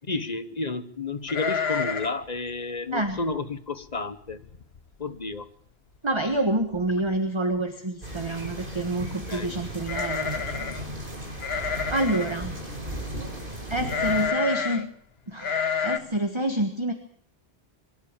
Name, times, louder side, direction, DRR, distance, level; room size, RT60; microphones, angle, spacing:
voice 1, 0.1-4.4 5.0-5.5 9.3-9.6 12.0-12.1, left 3 dB, 40° left, 11 dB, 1.4 m, -31 dB
sound 1, 1.3-2.2 2.5-2.6 3.1-3.3 3.9-4.0 4.3-4.8 5.1-5.2 6.3-6.4 6.7-7.2 9.8-10.8 11.4-12.4 13.9-14.8 15.4-16.0, left 6 dB, 70° left, 1.5 m, -29 dB
voice 2, 6.0-10.4 11.9-12.5 13.7-14.9 15.3-16.9, right 1 dB, 25° right, 6 dB, 1.5 m, -27 dB
sound 2, 8.0-14.3, right 1 dB, 55° right, 4.9 m, -36 dB
23.5 x 12.5 x 9.0 m, 0.66 s
omnidirectional pair, 1.1 m